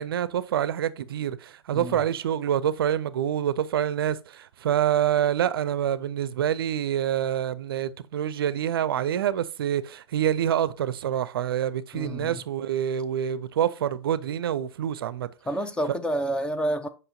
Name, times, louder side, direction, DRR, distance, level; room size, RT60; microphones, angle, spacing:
voice 1, 0.0-15.3, right 10 dB, 55° right, 0.5 m, -26 dB
voice 2, 11.9-12.4 15.5-16.9, right 1 dB, 5° left, 0.4 m, -29 dB
7.8 x 5.4 x 2.7 m
figure-of-eight pair, 105°, 15 cm